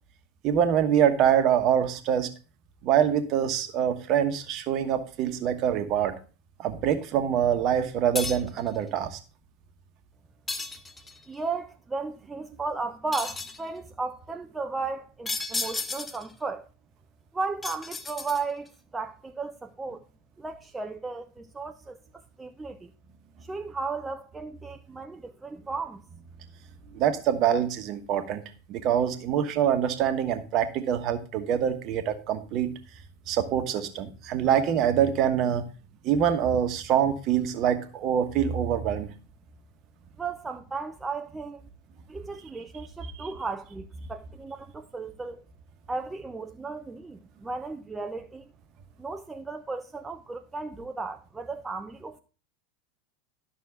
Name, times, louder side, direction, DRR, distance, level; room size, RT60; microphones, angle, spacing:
voice 1, 0.4-2.3 2.8-6.1 6.6-9.2 26.9-28.4 28.7-32.7 33.3-35.6 36.0-39.1 43.2-43.3, right 9 dB, 45° right, 1.2 m, -25 dB
sound 1, 8.2-8.6 10.5-11.2 13.1-13.7 15.3-16.3 17.6-18.7, left 3 dB, 15° left, 0.8 m, -33 dB
voice 2, 11.3-16.6 17.3-20.0 20.4-22.9 23.4-26.0 40.2-41.6 42.1-45.4 45.9-48.5 49.0-52.2, right 4 dB, 15° right, 0.6 m, -35 dB
11.5 x 6.2 x 3.7 m
figure-of-eight pair, 85°, 0 cm